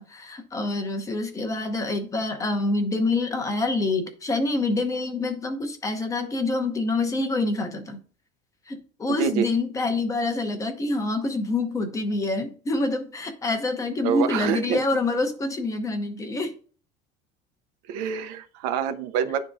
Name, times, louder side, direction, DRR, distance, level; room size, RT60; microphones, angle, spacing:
voice 1, 0.0-8.0 8.7-16.5, left 2 dB, 15° left, 5 dB, 0.8 m, -26 dB
voice 2, 14.0-14.8 17.9-19.5, right 8 dB, 85° right, 9 dB, 0.7 m, -26 dB
10.5 x 3.7 x 2.6 m, 0.42 s
cardioid pair, 165°, 20 cm